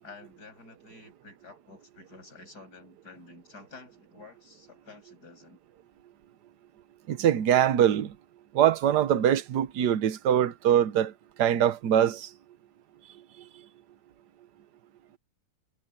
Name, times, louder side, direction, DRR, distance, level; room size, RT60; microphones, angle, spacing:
voice 1, 0.0-5.6, left 3 dB, 65° left, 7.8 m, -50 dB
voice 2, 7.1-8.1 8.5-11.1 11.4-12.3, right 10 dB, 75° right, 1.5 m, -23 dB
omnidirectional pair, 1.8 m